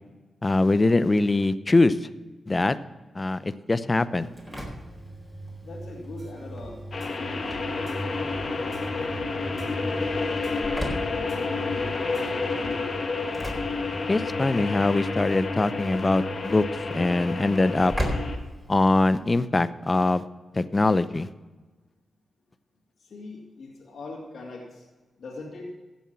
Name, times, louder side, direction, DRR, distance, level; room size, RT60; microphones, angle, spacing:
voice 1, 0.4-2.1 2.5-2.8 3.1-4.3 14.1-16.6 16.9-17.9 18.7-20.2 20.5-21.3, left 2 dB, 30° left, 14 dB, 0.7 m, -22 dB
Engine / Slam, 4.1-19.3, equal, ahead, 4.3 m, -38 dB
voice 2, 5.6-6.9 7.7-13.2 23.0-24.8 25.2-25.7, left 3 dB, 70° left, -6 dB, 2.9 m, -41 dB
sound 1, 6.2-12.9, right 2 dB, 50° right, 1.7 m, -47 dB
sound 2, 6.9-18.4, left 3 dB, 50° left, 1.8 m, -30 dB
16.0 x 7.2 x 5.9 m, 1.2 s
cardioid pair, 70°, 0 cm